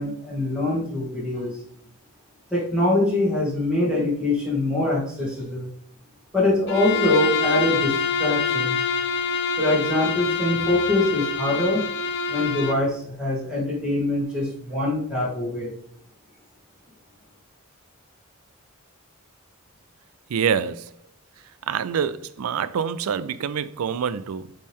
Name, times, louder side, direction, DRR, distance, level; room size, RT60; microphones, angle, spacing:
voice 1, 0.0-1.5 2.5-5.7 6.3-8.8 9.6-11.8 12.3-15.7, left 1 dB, 5° right, 2.1 m, -24 dB
Bowed string instrument, 6.7-12.9, left 5 dB, 55° left, 0.6 m, -25 dB
voice 2, 20.3-20.9 21.7-24.5, right 7 dB, 90° right, 0.4 m, -26 dB
8.5 x 3.2 x 3.6 m
head